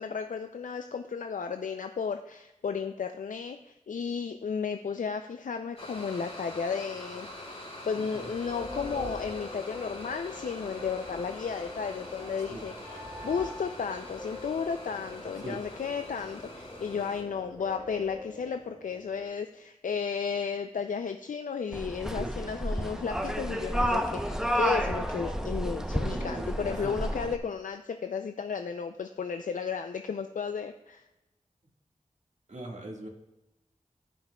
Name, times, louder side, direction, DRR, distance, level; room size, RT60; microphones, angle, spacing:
voice 1, 0.0-7.5 7.9-31.0, left 6 dB, 85° left, 7 dB, 0.4 m, -34 dB
sound 1, 5.8-17.2, left 1 dB, 50° left, 3.1 m, -44 dB
sound 2, 7.9-19.3, left 1 dB, 20° right, 2.5 m, -44 dB
sound 3, 21.7-27.4, equal, 5° right, 0.7 m, -30 dB
voice 2, 26.1-26.9 32.5-33.1, right 1 dB, 65° right, 0 dB, 1.7 m, -40 dB
15.0 x 5.9 x 2.3 m, 0.99 s
wide cardioid pair, 55°, 13 cm